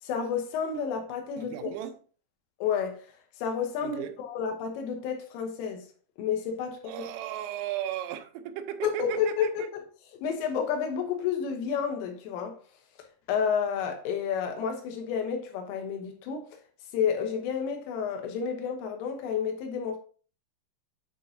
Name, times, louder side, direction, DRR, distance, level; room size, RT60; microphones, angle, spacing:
voice 1, 0.0-1.7 2.6-5.8 6.2-6.9 8.8-9.7 10.2-12.6 13.3-16.5 16.9-20.0, left 7 dB, 80° left, 3.5 m, -30 dB
voice 2, 1.4-1.9 3.8-4.1 6.8-9.7, right 11 dB, 85° right, 3.3 m, -35 dB
8.9 x 4.5 x 2.7 m
omnidirectional pair, 5.9 m